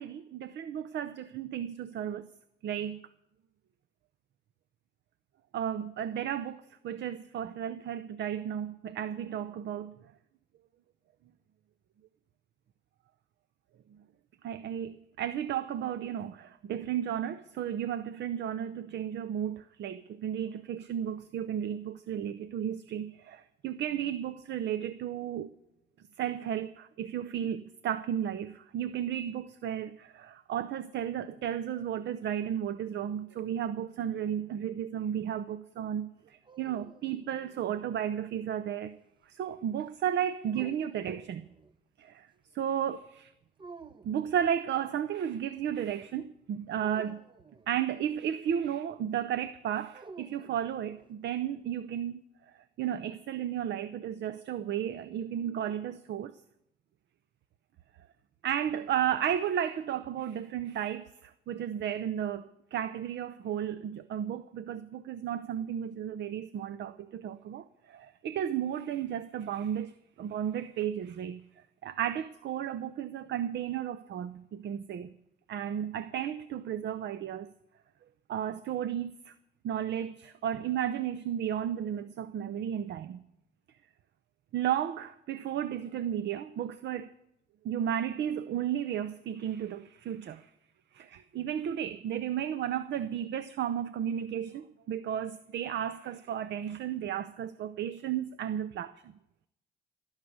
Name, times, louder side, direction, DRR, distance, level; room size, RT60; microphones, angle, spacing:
voice 1, 0.0-2.3 2.6-3.0 5.5-10.1 14.4-25.5 26.2-38.9 39.3-41.5 42.0-42.3 42.5-43.3 44.0-47.2 47.7-52.2 52.8-56.3 58.4-69.9 70.2-71.4 71.8-75.1 75.5-77.5 78.3-79.3 79.6-83.2 84.5-87.1 87.6-90.5 90.9-99.1, right 9 dB, 60° right, 0.6 m, -33 dB
sound 1, 36.2-38.0 40.5-41.8 43.6-44.4 46.8-47.9 49.9-51.1, right 3 dB, 25° right, 0.7 m, -51 dB
17.5 x 6.5 x 9.4 m
cardioid pair, 90°, 20 cm